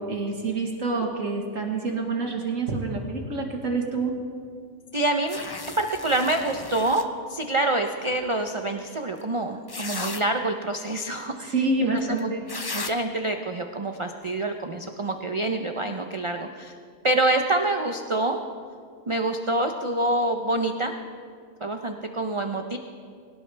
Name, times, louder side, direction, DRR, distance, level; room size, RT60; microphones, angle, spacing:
voice 1, 0.0-4.2 11.4-12.5, right 3 dB, 65° right, 2 dB, 1.9 m, -27 dB
voice 2, 4.9-5.4 5.8-11.5 11.8-11.9 12.2-12.3 12.7-16.7 17.0-18.4 19.1-21.0 21.6-22.8, right 2 dB, 30° right, 5 dB, 0.6 m, -26 dB
sound 1, 5.3-7.0 9.2-9.3 9.7-10.2 12.2-12.3 12.5-12.9, left 3 dB, 30° left, 0.4 m, -35 dB
22.0 x 18.0 x 3.4 m, 2.1 s
omnidirectional pair, 1.5 m